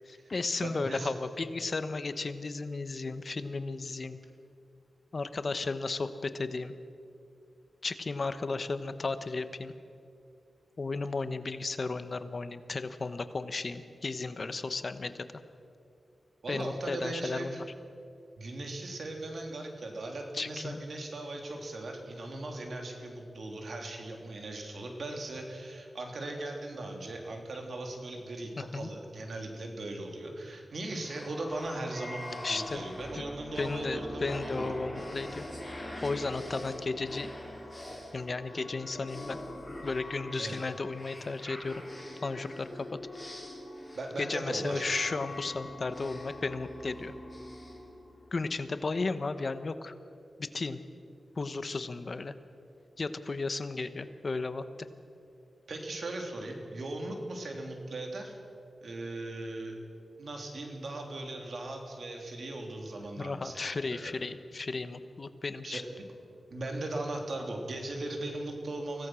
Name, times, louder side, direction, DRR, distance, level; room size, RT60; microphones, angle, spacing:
voice 1, 0.0-4.2 5.1-6.7 7.8-9.7 10.8-15.3 16.5-17.6 20.3-20.8 28.7-28.9 32.4-32.8 33.1-33.2 33.5-35.4 35.8-37.3 38.1-39.4 39.8-41.8 42.2-43.0 44.2-47.1 48.3-49.9 50.4-50.8 51.4-52.3 53.0-54.6 63.2-65.8, left 3 dB, 50° left, 11 dB, 1.0 m, -34 dB
voice 2, 0.6-1.1 16.4-17.6 18.4-34.7 40.4-40.6 43.9-44.9 55.7-58.4 58.8-59.8 60.2-64.1 65.6-66.0 66.5-69.1, right 2 dB, 65° right, 2 dB, 3.3 m, -38 dB
sound 1, 30.9-48.6, left 1 dB, 10° left, 5.5 m, -43 dB
24.5 x 17.0 x 6.3 m, 2.5 s
wide cardioid pair, 75°, 0 cm